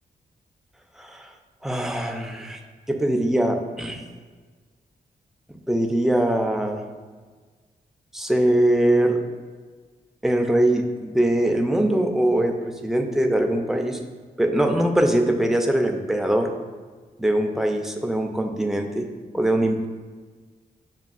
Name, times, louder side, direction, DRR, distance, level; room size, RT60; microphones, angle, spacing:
voice 1, 1.0-1.3 1.6-2.6 2.9-4.0 5.7-6.8 8.1-9.2 10.2-14.0 14.4-16.5 17.2-19.0 19.3-19.9, right 1 dB, ahead, 3 dB, 0.3 m, -22 dB
6.6 x 2.3 x 2.4 m, 1.5 s
wide cardioid pair, 100°, 16 cm